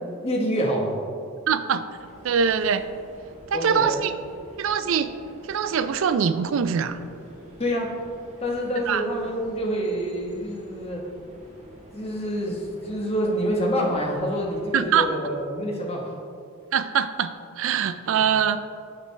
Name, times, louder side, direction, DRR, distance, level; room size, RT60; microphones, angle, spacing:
voice 1, 0.2-1.0 3.5-4.0 7.6-8.0 8.4-11.1 11.9-16.1 18.1-18.2, equal, 30° left, -1 dB, 1.0 m, -27 dB
voice 2, 1.5-1.8 2.2-2.9 3.5-4.1 4.6-5.1 5.5-7.0 8.9-9.0 14.7-15.1 16.7-18.6, right 7 dB, 60° right, 12 dB, 0.3 m, -23 dB
sound 1, 1.9-15.0, equal, 30° right, 1.5 m, -48 dB
8.2 x 6.2 x 3.3 m, 2.4 s
head